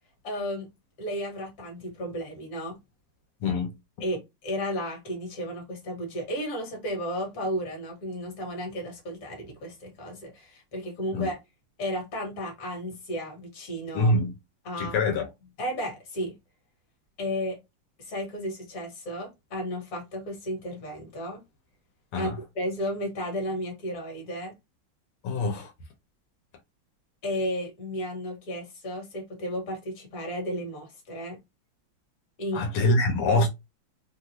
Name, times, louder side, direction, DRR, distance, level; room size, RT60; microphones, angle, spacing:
voice 1, 0.2-0.7 1.0-2.8 4.0-11.4 11.8-14.1 14.6-15.1 15.6-16.4 17.2-17.6 18.0-21.4 22.1-24.5 27.2-31.4 32.4-32.9, equal, 45° left, 1.5 m, -33 dB
voice 2, 3.4-3.7 11.1-11.3 13.9-14.3 14.8-15.3 22.1-22.4 25.2-25.7 32.5-33.5, left 2 dB, 80° left, 1.6 m, -24 dB
3.5 x 2.4 x 2.7 m
omnidirectional pair, 2.3 m